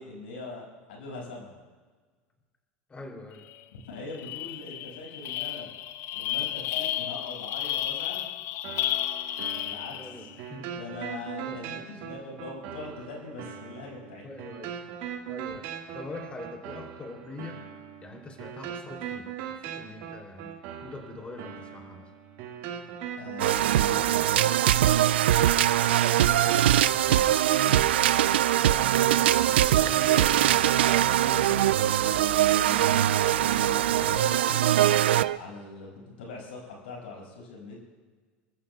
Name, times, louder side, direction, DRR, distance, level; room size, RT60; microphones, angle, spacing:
voice 1, 0.0-1.5 3.7-5.7 6.1-8.3 9.5-10.3 10.7-14.2 15.5-15.6 23.2-24.4 27.6-27.9 31.0-34.7 35.3-37.8, left 3 dB, 90° left, -2 dB, 5.5 m, -42 dB
voice 2, 2.9-3.4 9.9-10.7 11.5-11.6 14.2-14.7 15.3-17.6 18.0-20.5 20.8-22.1 26.1-27.2 28.6-30.6, left 2 dB, 20° left, 1 dB, 2.9 m, -44 dB
sound 1, 3.5-3.6 3.9-10.4, left 13 dB, 55° left, 0.7 m, -32 dB
sound 2, 8.6-24.6, right 8 dB, 65° right, 1.8 m, -40 dB
sound 3, 23.4-35.4, right 12 dB, 90° right, 0.4 m, -22 dB
29.0 x 14.0 x 2.3 m, 1.5 s
supercardioid pair, 100°, 6 cm